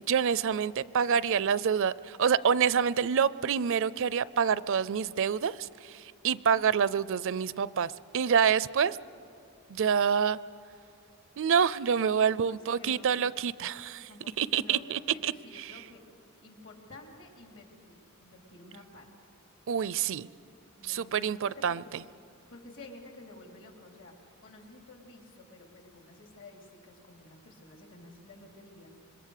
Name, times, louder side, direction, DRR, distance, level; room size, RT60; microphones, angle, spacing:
voice 1, 0.1-9.0 9.7-10.4 11.4-14.1 14.4-15.8 19.7-20.3 20.8-22.0, right 7 dB, 60° right, 19 dB, 0.5 m, -27 dB
voice 2, 12.5-13.1 14.1-16.0 16.4-19.1 20.8-22.0 22.5-29.0, left 2 dB, 60° left, 2 dB, 3.7 m, -51 dB
26.5 x 22.0 x 6.7 m, 2.7 s
head